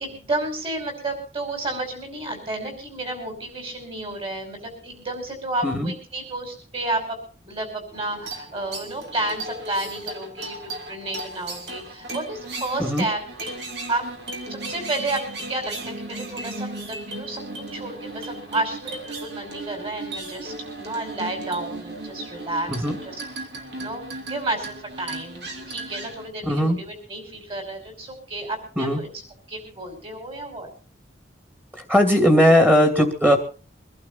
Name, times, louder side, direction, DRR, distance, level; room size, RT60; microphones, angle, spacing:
voice 1, 0.0-7.2 7.4-13.5 13.9-14.1 14.5-17.4 17.7-23.5 23.8-29.1 29.5-30.7, right 2 dB, 30° right, 5 dB, 5.6 m, -31 dB
sound 1, 7.9-26.3, right 2 dB, 65° right, 3.2 m, -36 dB
voice 2, 26.5-26.8 28.8-29.0 31.9-33.4, equal, 10° right, 5 dB, 2.6 m, -18 dB
24.0 x 12.0 x 4.2 m, 0.36 s
head